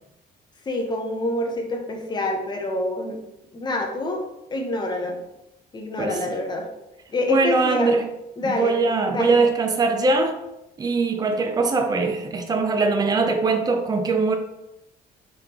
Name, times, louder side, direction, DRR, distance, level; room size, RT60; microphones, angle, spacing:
voice 1, 0.7-3.2 3.5-4.2 4.5-5.2 5.7-6.7 7.1-7.9 8.4-8.8 9.1-9.4, left 1 dB, 25° left, 2 dB, 0.8 m, -26 dB
voice 2, 6.0-6.3 7.3-8.1 8.4-10.4 10.8-14.4, right 3 dB, 25° right, 4 dB, 0.5 m, -21 dB
3.8 x 3.3 x 2.9 m, 0.91 s
cardioid pair, 110°, 17 cm